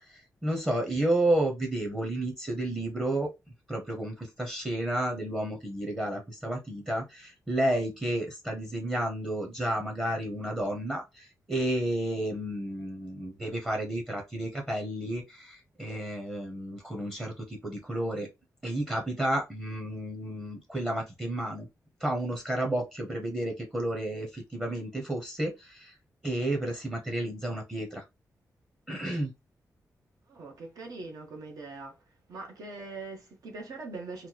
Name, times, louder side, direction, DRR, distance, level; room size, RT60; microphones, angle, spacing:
voice 1, 0.0-3.3 3.7-18.3 18.6-21.7 22.0-26.0 26.2-28.0 28.9-29.3, right 1 dB, 15° right, 0.7 m, -31 dB
voice 2, 30.3-32.0 32.3-34.3, right 3 dB, 80° right, 1.0 m, -42 dB
3.0 x 2.1 x 3.9 m
wide cardioid pair, 180°, 6 cm